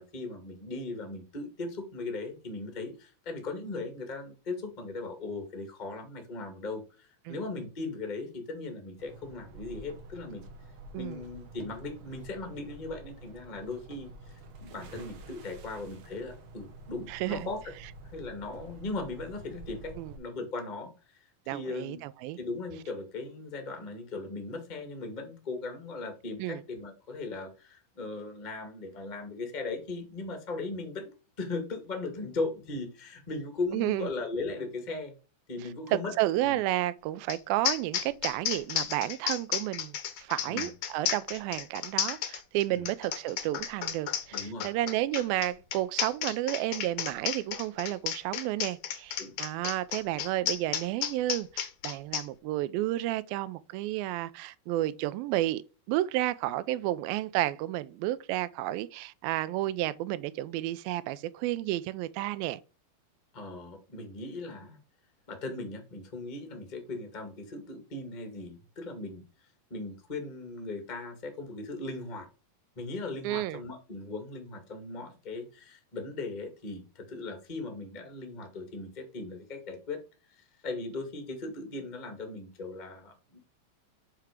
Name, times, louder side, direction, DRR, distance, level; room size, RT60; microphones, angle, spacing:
voice 1, 0.0-10.4 10.9-17.6 18.1-22.0 22.4-31.1 31.4-35.1 35.5-36.1 36.4-36.6 40.4-40.7 42.7-42.9 44.3-44.7 49.2-49.3 63.3-64.8 65.3-69.2 69.7-72.3 72.7-80.0 80.4-83.4, left 3 dB, 45° left, 0.5 m, -38 dB
sound 1, 9.0-20.2, right 2 dB, 65° right, 1.6 m, -49 dB
voice 2, 17.1-17.5 20.0-20.1 21.5-22.0 22.2-22.4 26.4-26.6 33.7-34.1 35.9-55.6 55.9-62.6 73.2-73.6, right 15 dB, 80° right, 2.3 m, -31 dB
sound 2, 37.3-37.4 37.6-52.2, left 10 dB, 80° left, 1.5 m, -32 dB
7.6 x 4.6 x 5.0 m
omnidirectional pair, 4.4 m